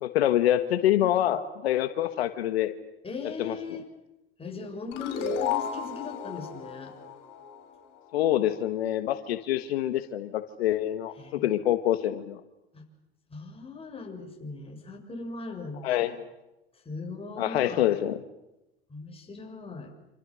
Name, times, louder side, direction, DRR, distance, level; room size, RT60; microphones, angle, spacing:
voice 1, 0.0-2.7 3.4-3.6 8.1-12.4 15.8-16.2 17.4-18.2, left 12 dB, 80° left, 9 dB, 1.6 m, -26 dB
voice 2, 1.0-1.3 3.0-3.8 4.4-6.9 11.2-11.5 12.7-12.9 13.3-16.0 16.9-17.9 18.9-19.9, left 4 dB, 20° left, 2 dB, 7.0 m, -39 dB
sound 1, 4.9-8.1, left 7 dB, 55° left, 6.4 m, -33 dB
27.5 x 27.5 x 6.4 m, 0.93 s
hypercardioid pair, 95°, 31 cm